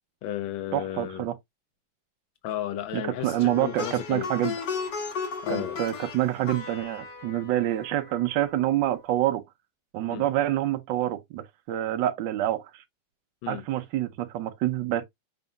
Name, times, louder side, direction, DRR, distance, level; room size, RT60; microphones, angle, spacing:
voice 1, 0.2-1.3 2.4-4.3 5.4-5.8 10.1-10.2 13.4-13.6, left 12 dB, 85° left, 1.5 m, -33 dB
voice 2, 0.7-1.3 2.9-4.5 5.5-9.4 9.9-12.8 13.5-15.1, right 13 dB, 75° right, 1.3 m, -27 dB
Plucked string instrument, 3.2-8.5, left 5 dB, 65° left, 1.8 m, -35 dB
5.4 x 4.3 x 2.3 m
omnidirectional pair, 2.1 m